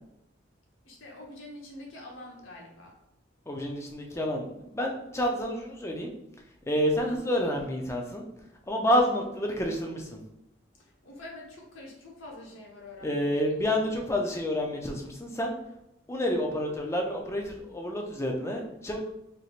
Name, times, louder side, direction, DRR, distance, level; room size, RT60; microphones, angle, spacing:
voice 1, 0.9-3.0 10.7-13.5, left 1 dB, 90° left, -1 dB, 1.1 m, -46 dB
voice 2, 3.5-6.1 6.7-8.2 8.7-10.2 13.0-15.5 16.1-19.0, equal, 15° left, 1 dB, 0.5 m, -29 dB
4.0 x 3.3 x 2.4 m, 0.85 s
head